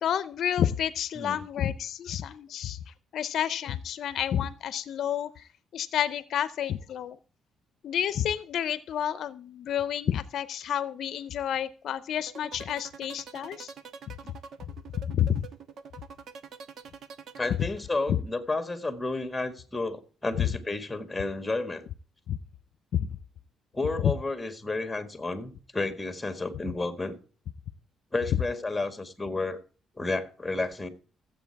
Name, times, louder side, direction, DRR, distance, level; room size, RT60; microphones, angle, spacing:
voice 1, 0.0-2.8 3.1-7.2 7.8-13.7 14.9-15.4 18.1-18.2 20.4-20.5 22.3-22.4 22.9-23.1 24.0-24.1, left 10 dB, 70° left, 0.6 m, -29 dB
sound 1, 12.2-18.1, right 6 dB, 70° right, 1.2 m, -45 dB
voice 2, 17.4-21.9 23.7-27.2 28.1-29.6 30.0-30.9, left 2 dB, 15° left, 1.8 m, -31 dB
15.0 x 7.9 x 4.7 m
cardioid pair, 90°, 0 cm